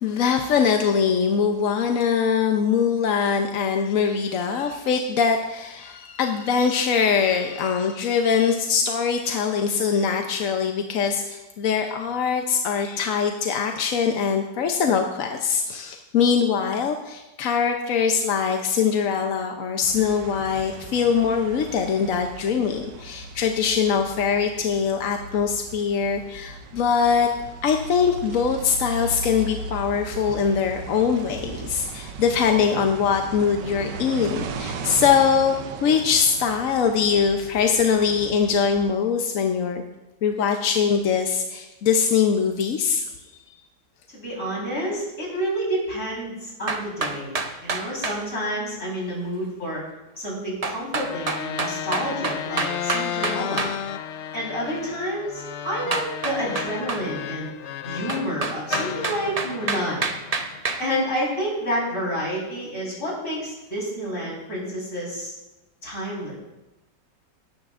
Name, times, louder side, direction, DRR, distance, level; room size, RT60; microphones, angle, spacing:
voice 1, 0.0-27.3 27.6-35.5 35.8-39.8 40.2-43.0, left 6 dB, 60° left, 4 dB, 1.0 m, -22 dB
sound 1, 19.8-38.9, right 4 dB, 85° right, 1.4 m, -37 dB
voice 2, 44.1-49.8 50.2-53.7 54.3-57.5 57.8-60.1 60.5-65.3 65.8-66.3, equal, 45° left, -4 dB, 4.6 m, -29 dB
sound 2, 46.7-48.2 50.6-53.7 55.9-57.0 58.1-60.8, right 3 dB, 55° right, 0.4 m, -27 dB
sound 3, 51.0-58.4 58.7-61.1, left 9 dB, 85° left, 0.6 m, -33 dB
18.5 x 10.0 x 2.5 m, 1.0 s
omnidirectional pair, 1.9 m